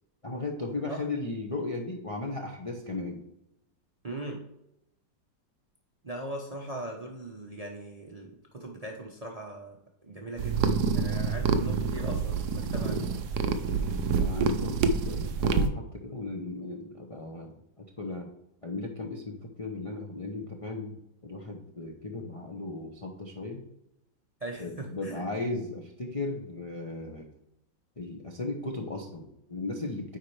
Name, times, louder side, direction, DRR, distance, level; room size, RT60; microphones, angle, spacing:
voice 1, 0.2-3.2 14.2-18.3 18.6-23.6 24.6-27.3 28.0-30.2, left 2 dB, 35° left, 0 dB, 0.5 m, -36 dB
voice 2, 4.0-4.4 6.0-9.8 10.0-13.1 24.4-25.2, right 1 dB, 30° right, 0 dB, 0.7 m, -40 dB
sound 1, 10.4-15.7, right 5 dB, 70° right, 1.1 m, -27 dB
9.4 x 4.3 x 3.2 m, 0.83 s
omnidirectional pair, 1.9 m